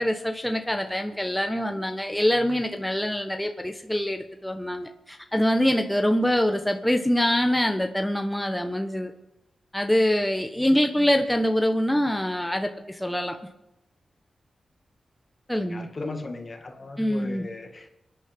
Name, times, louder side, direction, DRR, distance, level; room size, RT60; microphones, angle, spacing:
voice 1, 0.0-9.1 9.7-13.4 15.5-15.9 17.0-17.4, equal, 5° left, 4 dB, 1.2 m, -24 dB
voice 2, 15.5-17.9, left 2 dB, 50° left, 3 dB, 2.1 m, -37 dB
26.5 x 9.8 x 3.7 m, 0.91 s
cardioid pair, 50°, 0 cm